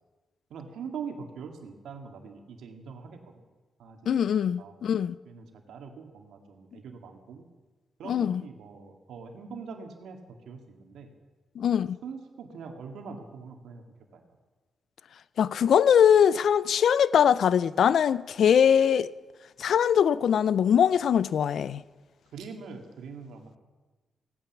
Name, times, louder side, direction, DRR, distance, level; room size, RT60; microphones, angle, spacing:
voice 1, 0.5-3.4 3.8-4.2 4.6-4.7 5.3-7.5 8.0-11.1 11.8-13.8 14.1-14.2 22.3-23.6, right 5 dB, 85° right, 1.9 m, -43 dB
voice 2, 4.1-5.2 8.1-8.4 11.6-12.0 15.4-19.1 19.6-21.8, left 8 dB, 75° left, 0.4 m, -22 dB
16.0 x 9.1 x 7.3 m
cardioid pair, 80°, 0 cm